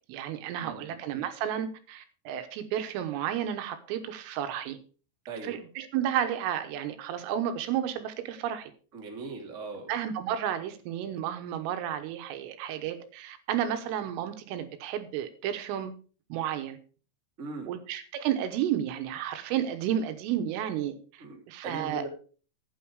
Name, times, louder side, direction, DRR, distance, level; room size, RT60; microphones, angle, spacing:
voice 1, 0.0-4.8 5.4-8.7 9.9-15.9 16.3-16.8 17.6-22.1, right 10 dB, 80° right, 8 dB, 3.6 m, -32 dB
voice 2, 0.6-1.0 5.3-5.6 8.9-9.9 17.4-17.7 21.2-21.4 21.6-22.1, right 3 dB, 25° right, 0 dB, 1.9 m, -39 dB
12.5 x 8.8 x 4.7 m, 0.40 s
omnidirectional pair, 5.9 m